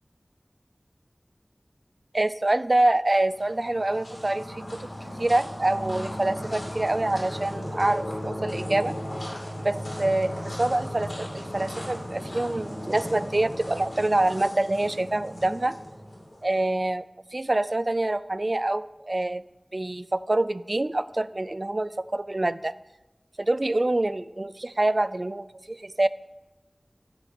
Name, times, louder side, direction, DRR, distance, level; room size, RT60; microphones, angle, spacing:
voice 1, 2.1-4.9 5.2-9.0 9.6-15.8 16.4-17.0 17.3-19.4 19.7-22.7 23.4-26.1, right 2 dB, 50° right, 16 dB, 0.3 m, -26 dB
sound 1, 3.3-16.6, equal, 85° left, 2.6 m, -36 dB
8.8 x 4.2 x 6.9 m, 1.0 s
wide cardioid pair, 50°, 0 cm